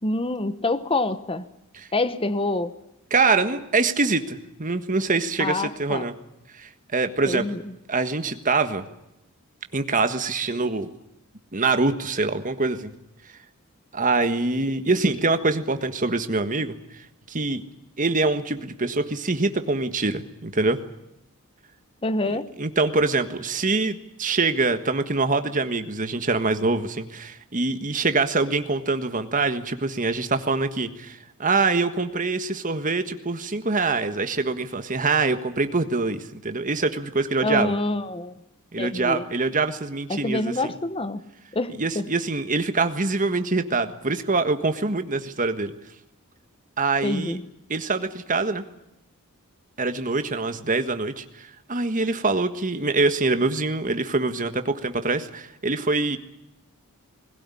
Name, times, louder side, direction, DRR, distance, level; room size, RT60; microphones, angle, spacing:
voice 1, 0.0-1.4 1.9-2.7 5.4-6.0 7.3-7.7 22.0-22.5 37.4-38.4 38.8-39.2 40.1-41.2 41.5-42.1 47.0-47.4, left 2 dB, 25° left, 13 dB, 1.1 m, -26 dB
voice 2, 3.1-6.1 6.6-7.5 7.9-8.8 9.7-10.9 11.5-12.9 13.9-17.0 17.3-17.6 18.0-20.8 22.3-37.7 38.7-40.7 41.8-45.7 46.8-47.4 47.7-48.6 49.8-56.2, right 3 dB, 35° right, 9 dB, 1.5 m, -24 dB
21.0 x 16.5 x 9.8 m, 0.87 s
head